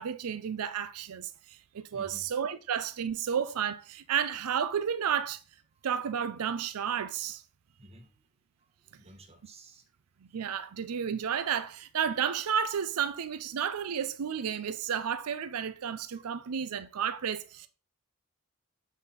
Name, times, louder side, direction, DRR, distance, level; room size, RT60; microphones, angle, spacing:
voice 1, 0.0-5.4 5.8-7.4 10.3-17.7, right 8 dB, 85° right, 0.5 m, -32 dB
voice 2, 1.9-2.3 2.9-3.1 7.8-8.1 9.0-9.8 16.1-16.3, right 1 dB, 25° right, 1.1 m, -52 dB
7.1 x 4.1 x 4.0 m
head